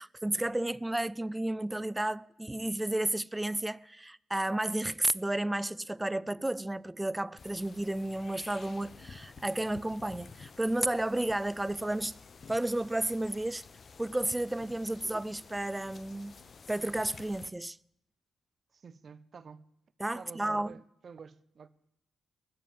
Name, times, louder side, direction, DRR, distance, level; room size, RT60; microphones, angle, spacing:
voice 1, 0.0-12.1 12.5-13.6 14.0-16.4 16.7-17.8 20.0-20.8, right 1 dB, 15° right, 0.5 m, -32 dB
sound 1, 7.4-17.5, left 5 dB, 50° left, 0.8 m, -52 dB
voice 2, 18.7-19.7 20.1-21.7, right 5 dB, 55° right, 0.8 m, -50 dB
19.5 x 6.9 x 8.9 m
hypercardioid pair, 40°, 0 cm